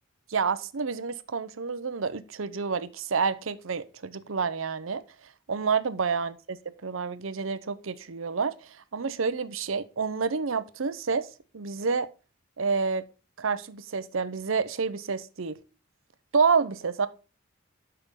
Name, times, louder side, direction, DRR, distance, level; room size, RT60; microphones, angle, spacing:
voice 1, 0.3-5.0 5.5-6.6 6.8-11.3 11.5-12.1 12.6-13.0 13.4-15.6 16.3-17.1, right 5 dB, 75° right, 0.7 m, -28 dB
12.0 x 5.6 x 3.7 m
head